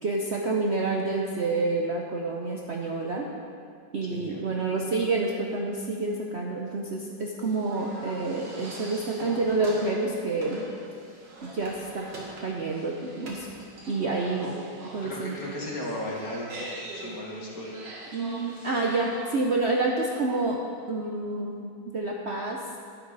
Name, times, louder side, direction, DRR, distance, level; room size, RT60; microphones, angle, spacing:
voice 1, 0.0-3.3 3.9-10.6 11.4-12.1 12.4-13.5 13.9-14.5 14.9-15.4 18.1-20.6 20.9-22.6, right 3 dB, 50° right, -1 dB, 0.8 m, -28 dB
voice 2, 4.1-4.4 14.4-14.5 15.0-17.7, left 1 dB, 50° left, -3 dB, 2.2 m, -36 dB
sound 1, 7.4-19.4, right 1 dB, 80° right, 2.5 m, -43 dB
11.5 x 11.0 x 4.0 m, 2.3 s
omnidirectional pair, 1.9 m